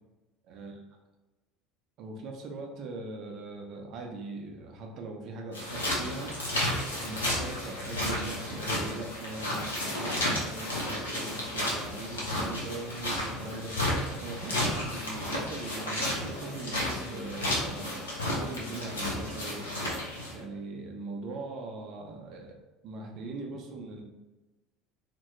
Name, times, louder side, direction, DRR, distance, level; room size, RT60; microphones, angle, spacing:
voice 1, 0.5-0.8 2.0-6.3 7.0-13.9 14.2-19.7 20.3-22.6 22.8-24.0, right 3 dB, 50° right, 1 dB, 0.5 m, -40 dB
sound 1, 5.5-20.4, left 1 dB, 85° left, 0.6 m, -32 dB
2.2 x 2.2 x 2.8 m, 1.1 s
figure-of-eight pair, 65°, 0 cm